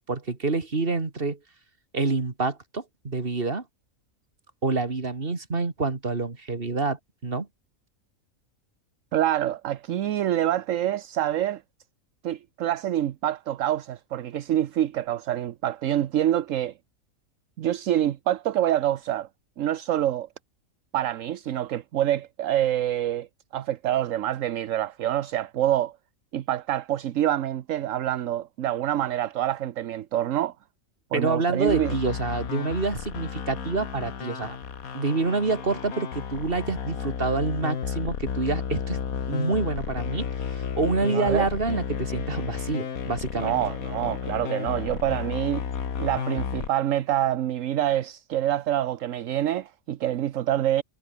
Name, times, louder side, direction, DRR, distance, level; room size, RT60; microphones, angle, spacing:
voice 1, 0.1-1.4 1.9-3.6 4.6-7.5 31.1-34.6 34.9-39.0 39.3-43.6, right 3 dB, 40° right, 2.6 m, -27 dB
voice 2, 9.1-11.6 12.2-16.7 17.6-19.3 19.6-20.3 20.9-23.3 23.5-25.9 26.3-30.5 31.1-32.0 41.0-41.5 43.4-45.6 46.0-50.8, right 12 dB, 70° right, 1.1 m, -26 dB
sound 1, 31.7-46.7, left 7 dB, 85° left, 1.9 m, -32 dB
omnidirectional pair, 1.4 m